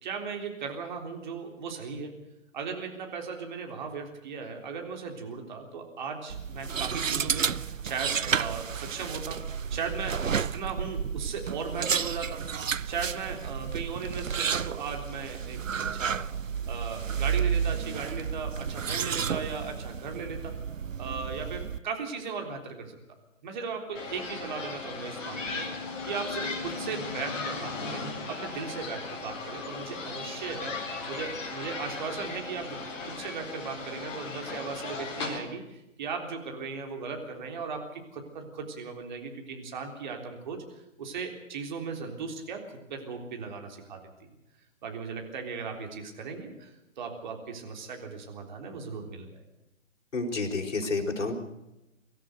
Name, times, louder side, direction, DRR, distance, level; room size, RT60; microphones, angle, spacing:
voice 1, 0.0-2.1 2.5-9.4 9.7-12.4 12.9-16.2 16.7-20.5 21.0-23.0 23.4-25.7 26.0-30.8 31.1-40.6 41.0-42.6 42.9-44.3 44.8-46.7 47.0-49.4, right 5 dB, 35° right, 3 dB, 3.7 m, -37 dB
sound 1, 6.3-21.8, right 7 dB, 80° right, 0.7 m, -31 dB
sound 2, 24.0-35.4, left 3 dB, 25° left, 4.1 m, -37 dB
voice 2, 50.1-51.3, left 3 dB, 65° left, 2 dB, 4.7 m, -29 dB
24.0 x 14.0 x 8.0 m, 0.94 s
figure-of-eight pair, 145°, 38 cm